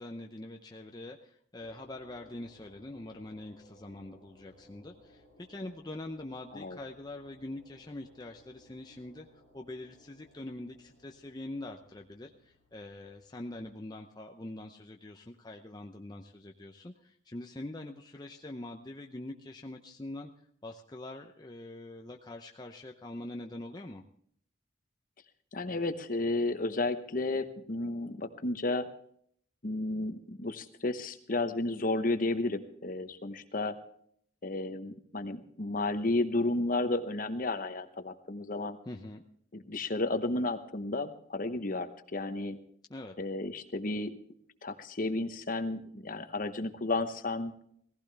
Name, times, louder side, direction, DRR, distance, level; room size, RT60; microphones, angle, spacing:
voice 1, 0.0-9.3 9.5-20.3 20.6-24.0 38.9-39.2 42.9-43.2, left 1 dB, 20° left, 2 dB, 0.6 m, -44 dB
sound 1, 1.6-13.6, equal, 65° right, 7.2 m, -62 dB
voice 2, 25.5-28.9 29.6-33.7 34.4-38.8 39.5-42.6 43.2-44.1 44.6-47.5, left 2 dB, 45° left, 9 dB, 0.9 m, -32 dB
17.0 x 15.5 x 3.3 m, 0.64 s
head